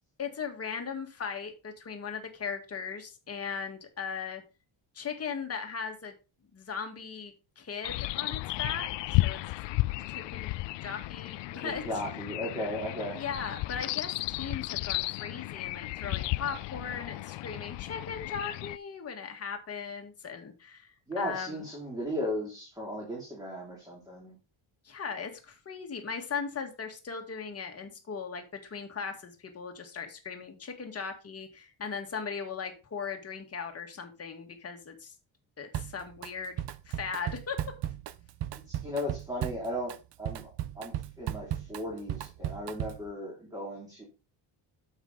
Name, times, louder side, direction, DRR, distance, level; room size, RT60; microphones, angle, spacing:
voice 1, 0.2-4.4 4.9-6.1 6.5-8.9 9.2-9.4 10.1-10.5 10.8-11.8 13.1-20.9 21.2-21.6 24.8-35.1 35.6-36.6 36.9-37.6, left 6 dB, 30° left, 4 dB, 1.9 m, -38 dB
sound 1, 7.8-18.8, left 19 dB, 65° left, 0.5 m, -33 dB
voice 2, 11.5-13.2 21.1-24.4 38.7-39.9 40.2-40.5 40.8-44.1, equal, 10° right, -3 dB, 2.9 m, -36 dB
Drum kit, 35.7-36.3 36.6-43.1, right 12 dB, 60° right, 0.8 m, -36 dB
9.3 x 7.4 x 4.0 m, 0.31 s
cardioid pair, 160°, 47 cm